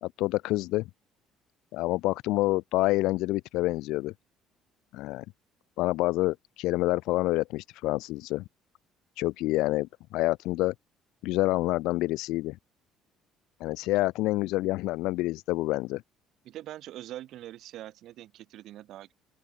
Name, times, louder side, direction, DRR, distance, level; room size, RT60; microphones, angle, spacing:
voice 1, 0.0-0.8 1.7-4.1 4.9-5.2 5.8-8.4 9.2-10.7 11.2-12.6 13.6-16.0, left 19 dB, 80° left, 0.4 m, -27 dB
voice 2, 16.4-19.1, right 13 dB, 65° right, 2.5 m, -43 dB
open air
cardioid pair, 120°, 0 cm